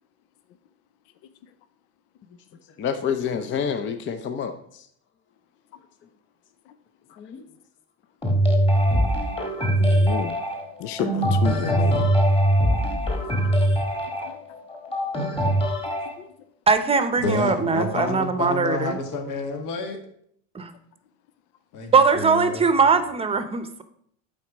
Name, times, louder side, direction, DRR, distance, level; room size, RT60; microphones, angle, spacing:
voice 1, 2.8-4.9 7.1-7.4 9.0-9.1, left 7 dB, 35° left, 7 dB, 0.6 m, -28 dB
sound 1, 8.2-16.1, right 1 dB, 15° left, 1.6 m, -22 dB
voice 2, 9.8-10.4 10.8-12.1 14.2-14.4 16.2-16.3, left 9 dB, 85° left, 12 dB, 0.6 m, -31 dB
voice 3, 16.7-19.0 20.5-20.7 21.9-23.8, right 5 dB, 15° right, 9 dB, 0.8 m, -21 dB
voice 4, 17.2-20.0 21.7-22.6, left 3 dB, 65° left, 4 dB, 1.8 m, -29 dB
7.8 x 4.3 x 6.0 m, 0.67 s
cardioid pair, 120°, 34 cm